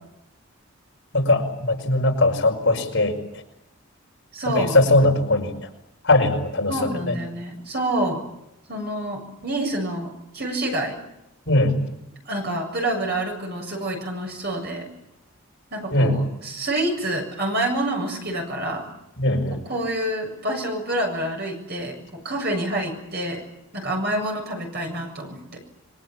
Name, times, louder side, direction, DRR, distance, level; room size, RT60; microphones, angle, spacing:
voice 1, 1.1-3.2 4.5-5.5 6.0-7.1 11.5-11.8 15.9-16.2 19.2-19.6, left 2 dB, 55° left, 1 dB, 5.4 m, -20 dB
voice 2, 4.3-4.8 6.7-8.3 8.7-11.0 12.3-14.9 15.7-18.9 19.5-23.4 23.7-25.6, right 1 dB, 45° right, 2 dB, 7.3 m, -27 dB
27.0 x 23.5 x 8.9 m, 0.86 s
head